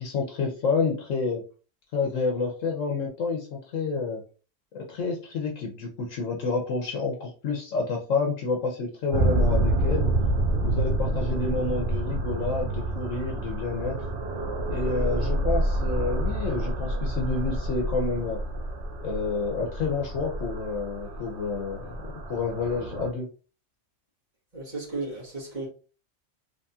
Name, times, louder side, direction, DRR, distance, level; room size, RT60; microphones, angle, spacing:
voice 1, 0.0-1.4 1.9-4.2 4.7-10.1 10.6-14.0 14.7-18.4 19.0-22.0 22.3-23.3, left 4 dB, 75° left, 1 dB, 1.1 m, -29 dB
sound 1, 9.1-23.1, right 1 dB, 60° right, 1.1 m, -28 dB
voice 2, 24.5-25.7, right 3 dB, 35° right, -4 dB, 1.8 m, -34 dB
3.5 x 3.5 x 2.7 m, 0.37 s
omnidirectional pair, 1.4 m